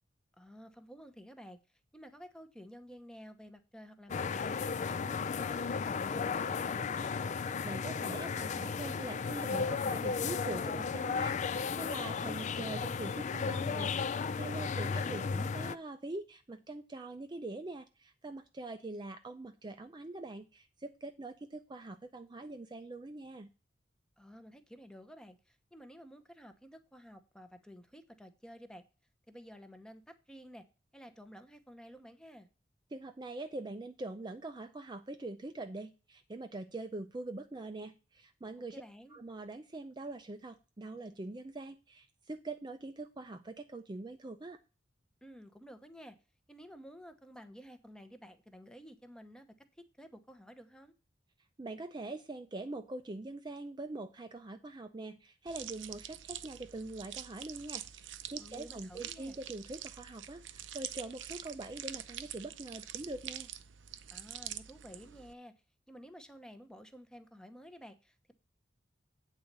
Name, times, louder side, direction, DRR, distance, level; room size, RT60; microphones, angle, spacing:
voice 1, 0.4-1.6 1.9-4.7 5.0-7.2 14.7-15.5 24.2-28.8 29.3-30.7 30.9-32.5 38.7-39.2 45.2-46.2 46.5-49.5 49.7-50.9 58.4-59.4 64.1-65.5 65.9-68.3, equal, 5° left, 9 dB, 0.8 m, -52 dB
sound 1, 4.1-15.7, left 5 dB, 40° left, 0.4 m, -34 dB
voice 2, 7.6-23.5 32.9-38.8 39.1-44.6 51.6-63.5, right 2 dB, 25° right, 7 dB, 0.5 m, -43 dB
sound 2, 55.5-65.3, right 11 dB, 80° right, 0.6 m, -45 dB
8.7 x 4.1 x 6.6 m, 0.32 s
head